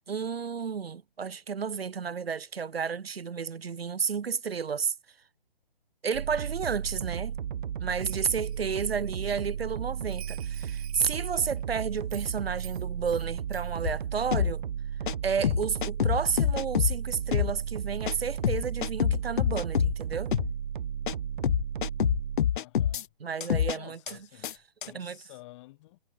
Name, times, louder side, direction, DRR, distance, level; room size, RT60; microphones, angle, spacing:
voice 1, 0.1-4.9 6.0-7.4 7.8-14.6 15.2-20.3 23.2-24.0 24.9-25.2, right 6 dB, 85° right, 1.4 m, -31 dB
sound 1, 6.1-22.4, right 9 dB, 55° right, 1.2 m, -34 dB
Bell, 8.0-8.7 10.1-11.6 12.1-13.3 13.5-13.8, right 14 dB, 40° right, 8.0 m, -51 dB
voice 2, 9.2-9.6 22.5-23.1 23.7-26.0, left 19 dB, 30° left, 4.8 m, -52 dB
sound 2, 13.8-14.0 14.3-14.5 15.1-15.2 15.4-17.0 17.3-17.5 18.1-18.2 18.4-19.9 20.3-20.5 21.1-21.2 21.4-23.0 23.4-23.8 24.1-24.2 24.4-24.5 24.8-24.9, left 10 dB, 60° left, 0.5 m, -26 dB
hypercardioid pair, 150°, 29 cm